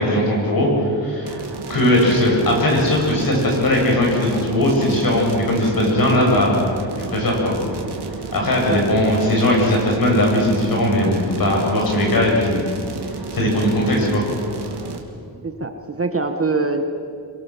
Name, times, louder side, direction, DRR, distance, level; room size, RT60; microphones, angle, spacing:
voice 1, 0.0-1.4 1.7-6.5 7.0-7.5 8.3-12.6 13.3-14.2, left 1 dB, 50° left, -1 dB, 7.7 m, -18 dB
sound 1, 1.2-15.0, right 3 dB, 65° right, 3.0 m, -32 dB
voice 2, 8.7-9.2 15.4-16.8, right 3 dB, 30° right, 6 dB, 1.4 m, -24 dB
27.0 x 23.5 x 7.4 m, 2.4 s
wide cardioid pair, 170°, 43 cm